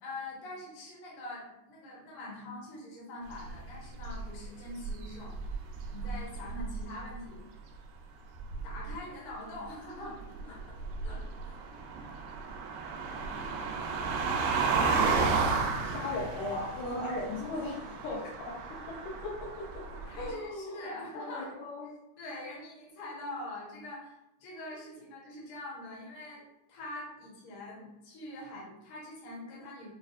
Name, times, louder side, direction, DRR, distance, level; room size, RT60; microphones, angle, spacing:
voice 1, 0.0-5.3 5.9-7.4 8.6-10.6 11.0-11.6 20.0-21.5 22.2-26.4 26.7-29.9, left 1 dB, 60° left, -5 dB, 1.6 m, -44 dB
sound 1, 3.3-4.5 4.8-7.0 8.4-9.0 10.2-20.3, right 4 dB, 85° right, 2.1 m, -33 dB
voice 2, 15.8-18.5 19.2-19.7 20.1-21.9, left 2 dB, 75° left, -3 dB, 1.9 m, -37 dB
6.3 x 2.3 x 2.4 m, 0.90 s
omnidirectional pair, 3.4 m